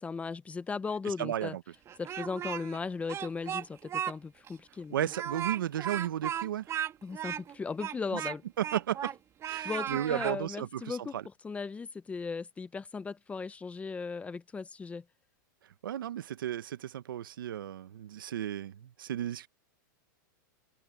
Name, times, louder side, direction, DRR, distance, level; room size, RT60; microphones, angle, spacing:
voice 1, 0.0-1.6 2.0-5.0 7.0-8.4 9.6-11.2 11.4-15.0, left 4 dB, 10° left, 0.9 m, -37 dB
voice 2, 1.1-1.6 4.9-6.8 8.6-9.1 9.4-11.2 15.8-19.5, right 11 dB, 85° right, 1.5 m, -34 dB
Speech, 1.8-2.8 3.1-4.1 4.5-4.6 5.1-9.2 9.4-10.4, right 10 dB, 25° right, 2.6 m, -36 dB
supercardioid pair, 140°, 11 cm